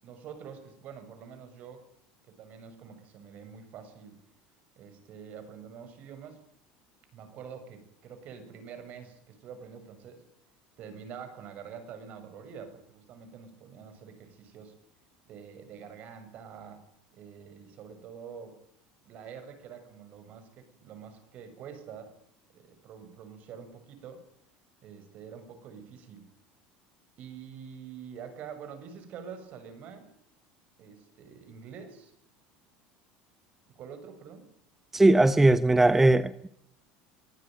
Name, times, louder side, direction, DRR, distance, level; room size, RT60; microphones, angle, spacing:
voice 1, 0.0-1.8 2.3-4.2 4.8-6.4 7.1-10.2 10.8-14.7 15.2-16.8 17.1-18.6 19.0-22.1 22.5-24.2 24.8-26.3 27.2-30.1 30.8-32.1 33.7-34.5, right 7 dB, 50° right, 9 dB, 7.0 m, -46 dB
voice 2, 34.9-36.5, right 2 dB, 10° right, 14 dB, 0.8 m, -20 dB
24.5 x 15.5 x 9.1 m, 0.73 s
supercardioid pair, 125°, 3 cm